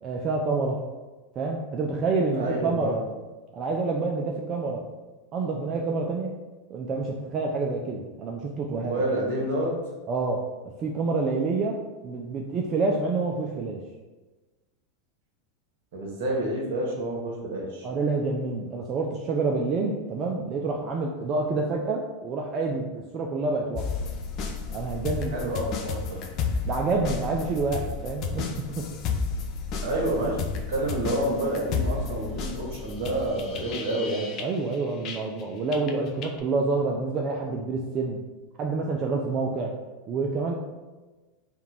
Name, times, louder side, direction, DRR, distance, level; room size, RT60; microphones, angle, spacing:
voice 1, 0.0-0.8 1.4-3.0 3.5-4.8 5.3-6.3 6.7-9.0 10.1-10.4 10.8-11.8 12.0-13.8 17.8-23.9 24.7-25.6 26.6-28.8 34.4-38.2 38.6-39.7 40.1-40.5, right 3 dB, 35° right, 0 dB, 0.4 m, -28 dB
voice 2, 2.3-3.0 8.7-9.7 15.9-17.9 25.3-26.2 29.8-34.3, right 1 dB, 70° right, -2 dB, 1.3 m, -29 dB
sound 1, 23.7-35.4 35.7-36.4, left 5 dB, 45° left, 0.6 m, -32 dB
3.6 x 2.4 x 4.3 m, 1.2 s
hypercardioid pair, 105°, 0 cm